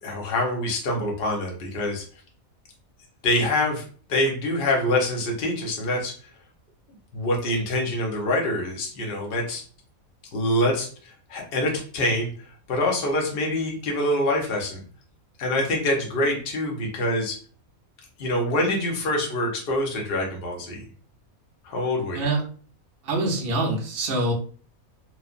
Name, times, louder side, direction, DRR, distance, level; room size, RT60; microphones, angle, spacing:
voice 1, 0.0-2.0 3.2-3.8 4.1-6.1 7.1-9.6 10.3-14.8 15.4-17.4 18.2-20.8 21.6-22.2, left 1 dB, 50° left, 0 dB, 0.9 m, -25 dB
voice 2, 23.0-24.3, right 2 dB, 55° right, 1 dB, 0.7 m, -25 dB
3.1 x 2.0 x 2.4 m, 0.42 s
omnidirectional pair, 1.5 m